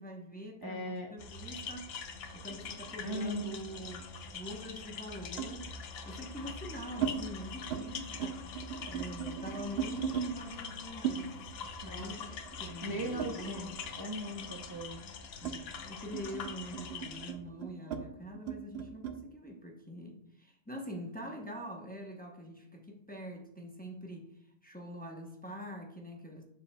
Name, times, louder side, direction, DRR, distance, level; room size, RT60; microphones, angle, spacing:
voice 1, 0.0-5.7 6.1-8.4 8.9-13.8 15.4-24.3 24.6-26.4, equal, 10° left, 0 dB, 0.7 m, -44 dB
voice 2, 0.6-1.1 3.0-3.6 11.8-12.2 12.8-13.7 14.0-15.0, right 1 dB, 25° right, 0 dB, 0.5 m, -38 dB
sound 1, 1.2-17.3, left 5 dB, 70° left, 0.9 m, -44 dB
sound 2, 2.5-4.1 5.4-5.6 6.4-7.2 7.5-7.9 8.1-10.3 11.0-13.9 14.2-19.2, right 9 dB, 75° right, 0.9 m, -39 dB
7.3 x 6.1 x 2.2 m, 0.76 s
omnidirectional pair, 1.1 m